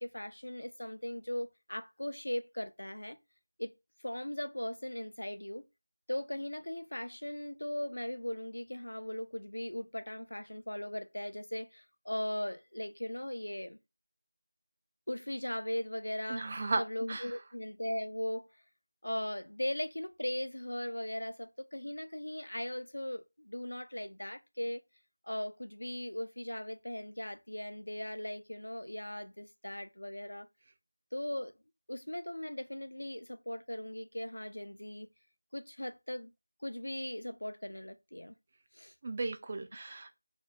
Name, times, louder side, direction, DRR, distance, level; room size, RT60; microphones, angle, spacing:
voice 1, 0.0-3.2 3.6-3.7 4.0-5.7 6.1-13.8 15.1-18.5 19.0-24.8 25.2-30.5 31.1-31.5 31.9-35.1 35.5-36.3 36.6-38.4 38.7-38.9, left 1 dB, 80° left, 0.4 m, -38 dB
voice 2, 16.3-16.8 17.1-17.3 39.0-40.2, right 3 dB, 25° right, 0.3 m, -35 dB
2.8 x 2.0 x 3.4 m
figure-of-eight pair, 175°, 0 cm